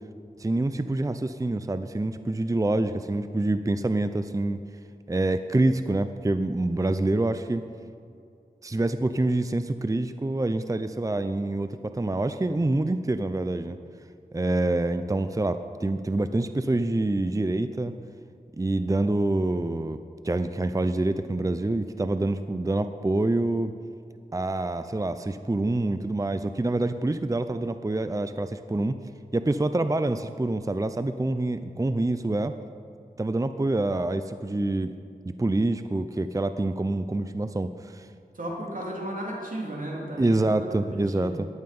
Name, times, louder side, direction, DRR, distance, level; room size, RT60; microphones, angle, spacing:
voice 1, 0.4-4.6 5.1-7.6 8.6-13.8 14.3-17.9 18.6-20.0 20.2-23.7 24.3-29.0 29.3-32.5 33.2-34.9 35.3-38.1 40.2-41.5, right 2 dB, 20° right, 10 dB, 0.6 m, -26 dB
voice 2, 38.3-41.3, right 1 dB, 50° right, -2 dB, 3.7 m, -34 dB
14.5 x 11.5 x 5.4 m, 2.5 s
cardioid pair, 45°, 17 cm